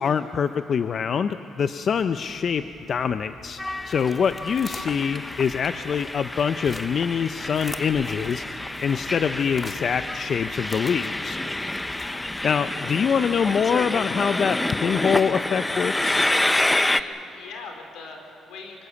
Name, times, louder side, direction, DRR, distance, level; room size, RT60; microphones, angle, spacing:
voice 1, 0.0-8.5 8.8-11.4 12.4-16.2, left 7 dB, 55° left, 10 dB, 0.6 m, -24 dB
sound 1, 2.0-12.9, left 3 dB, 30° left, 1.6 m, -45 dB
Train, 3.6-17.0, left 1 dB, 10° left, 0.7 m, -28 dB
voice 2, 12.0-12.4 16.7-18.9, left 4 dB, 85° left, 3 dB, 3.9 m, -41 dB
25.0 x 21.0 x 7.1 m, 2.8 s
cardioid pair, 90°, 0 cm